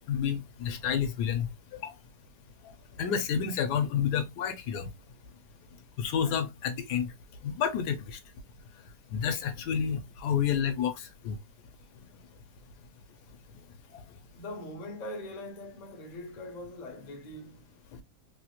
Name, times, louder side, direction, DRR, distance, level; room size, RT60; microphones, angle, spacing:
voice 1, 0.1-1.5 1.7-1.9 3.0-4.9 6.0-7.1 7.4-8.0 9.1-10.9 11.2-11.4, left 8 dB, 75° left, 1.2 m, -29 dB
voice 2, 14.3-17.8, left 1 dB, 45° left, 0.5 m, -42 dB
3.2 x 2.4 x 2.8 m
omnidirectional pair, 1.8 m